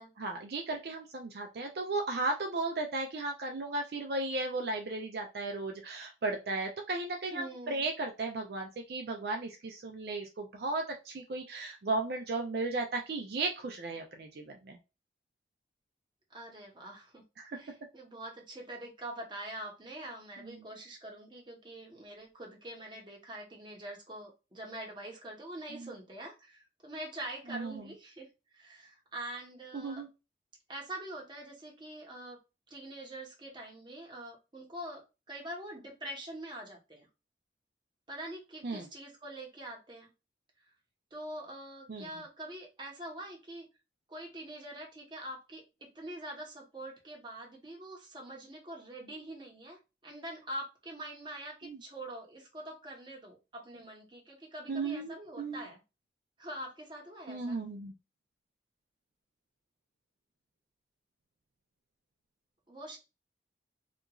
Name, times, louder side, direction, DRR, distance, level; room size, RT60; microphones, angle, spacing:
voice 1, 0.2-14.8 17.4-17.5 25.7-25.9 27.5-27.8 29.7-30.1 38.6-38.9 41.9-42.1 51.6-51.8 54.7-55.6 57.3-57.9, right 3 dB, 60° right, 2 dB, 0.4 m, -35 dB
voice 2, 7.3-7.9 16.3-17.2 17.5-30.0 30.7-32.4 32.7-37.1 38.1-40.1 41.1-43.7 44.1-55.8 56.4-57.6 62.7-63.0, right 1 dB, 25° right, 0 dB, 0.9 m, -44 dB
2.9 x 2.4 x 2.3 m, 0.27 s
head